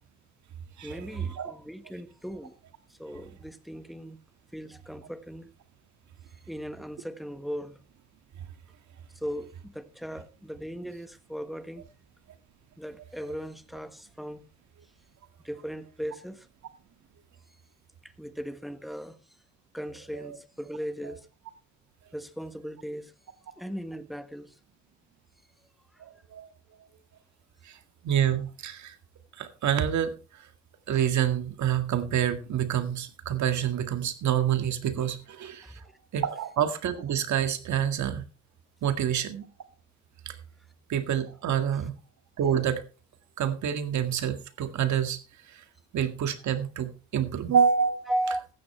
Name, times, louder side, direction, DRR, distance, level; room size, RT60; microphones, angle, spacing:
voice 1, 0.8-2.6 2.9-4.2 4.5-5.5 6.5-7.8 9.1-11.9 12.8-14.5 15.4-16.5 18.0-19.2 19.7-21.3 22.1-23.1 23.6-24.6 25.9-26.0 35.6-35.9 48.1-48.5, equal, ahead, 1.5 m, -37 dB
voice 2, 26.0-26.5 27.6-27.8 28.0-29.0 29.4-30.1 30.9-35.8 36.1-38.2 38.8-39.5 40.3-40.4 40.9-41.9 42.4-42.8 43.4-45.2 45.5-45.6 45.9-48.1, right 9 dB, 70° right, 2.0 m, -27 dB
15.0 x 12.0 x 3.3 m
cardioid pair, 90°, 30 cm